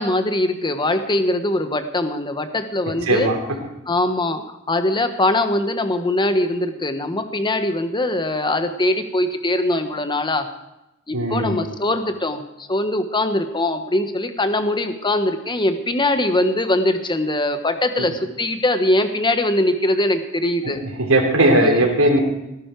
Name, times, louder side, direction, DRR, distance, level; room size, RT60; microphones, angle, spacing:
voice 1, 0.0-3.3 3.9-10.5 11.1-20.8 21.6-21.7, left 1 dB, 20° left, 8 dB, 1.2 m, -22 dB
voice 2, 3.1-3.4 11.1-11.6 18.0-18.1 20.6-22.2, right 1 dB, 80° right, 0 dB, 3.6 m, -18 dB
18.5 x 11.5 x 4.7 m, 0.95 s
head